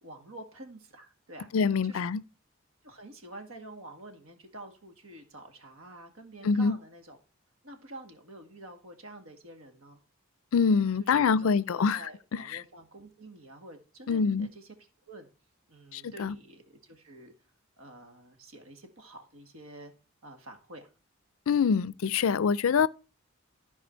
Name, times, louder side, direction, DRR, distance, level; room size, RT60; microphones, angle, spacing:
voice 1, 0.0-1.5 1.8-2.0 2.8-7.2 7.6-10.0 11.0-14.8 15.1-15.3 15.7-17.3 17.8-19.9 20.2-20.9, right 1 dB, 70° right, 1.8 m, -48 dB
voice 2, 1.5-2.2 6.4-6.8 10.5-12.0 12.3-12.6 14.1-14.5 15.9-16.3 21.5-22.9, left 5 dB, 70° left, 0.4 m, -25 dB
14.0 x 4.8 x 4.5 m
head